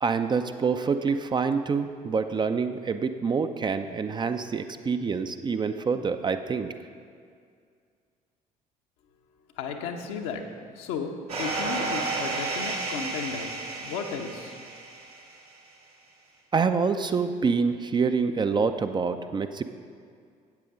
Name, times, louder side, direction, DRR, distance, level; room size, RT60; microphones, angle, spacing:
voice 1, 0.0-6.7 16.5-19.6, right 5 dB, 25° right, 8 dB, 0.5 m, -26 dB
voice 2, 9.6-10.4 10.7-13.5 13.8-14.6, left 5 dB, 65° left, 4 dB, 0.9 m, -34 dB
sound 1, 11.3-15.3, right 3 dB, 80° right, 1.6 m, -32 dB
13.0 x 8.4 x 3.8 m, 2.2 s
figure-of-eight pair, 50°, 20 cm